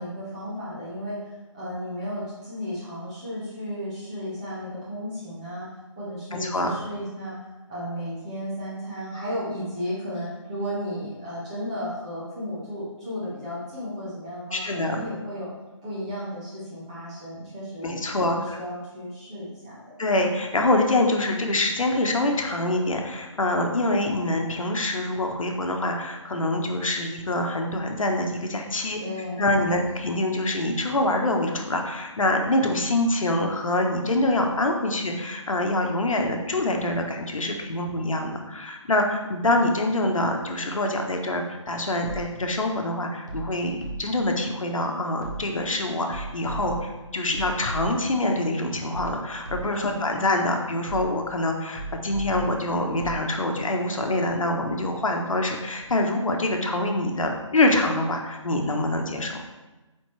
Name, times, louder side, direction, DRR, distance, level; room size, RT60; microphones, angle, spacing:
voice 1, 0.0-5.7 6.0-15.5 15.8-19.9 29.0-29.8 49.7-50.2, equal, 15° right, -9 dB, 1.3 m, -34 dB
voice 2, 6.3-6.8 14.5-15.0 17.8-18.6 20.0-29.0 29.4-59.4, left 1 dB, 85° left, 2 dB, 1.1 m, -25 dB
sound 1, 42.0-42.6 43.3-44.3 45.2-45.7 46.1-48.2 48.9-50.0 50.9-51.4 51.8-53.3, right 3 dB, 35° right, 1.0 m, -37 dB
9.1 x 3.9 x 3.2 m, 1.1 s
hypercardioid pair, 175°, 17 cm